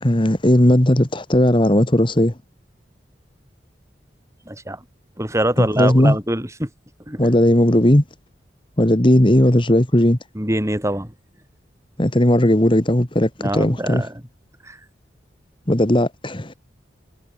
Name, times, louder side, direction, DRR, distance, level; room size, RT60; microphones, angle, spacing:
voice 1, 0.0-2.3 5.6-6.2 7.2-8.0 8.8-10.2 12.0-14.1 15.7-16.5, left 1 dB, 30° left, 1.8 m, -16 dB
voice 2, 4.5-4.8 5.2-6.7 7.1-7.2 10.3-11.1 13.4-14.1 14.6-14.8, right 1 dB, 15° right, 7.9 m, -24 dB
head